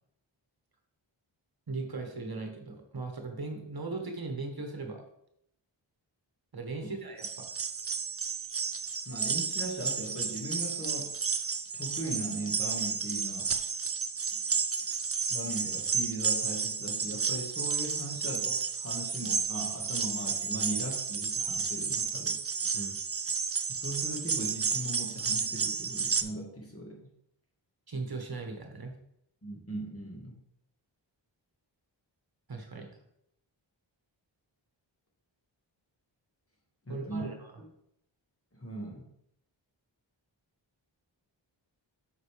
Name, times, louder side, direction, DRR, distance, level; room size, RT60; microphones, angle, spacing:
voice 1, 1.7-5.0 6.5-7.5 22.7-23.0 27.9-28.9 32.5-32.9 36.9-37.5, right 3 dB, 50° right, 3 dB, 1.3 m, -38 dB
sound 1, 7.2-26.2, right 6 dB, 30° right, 0.5 m, -32 dB
voice 2, 9.1-11.2 11.7-13.5 14.3-14.4 15.3-22.4 23.7-27.1 29.4-30.4 36.9-37.3 37.6-37.7 38.5-39.1, right 1 dB, 30° left, 0 dB, 1.8 m, -39 dB
8.0 x 5.4 x 3.4 m, 0.75 s
wide cardioid pair, 60°, 47 cm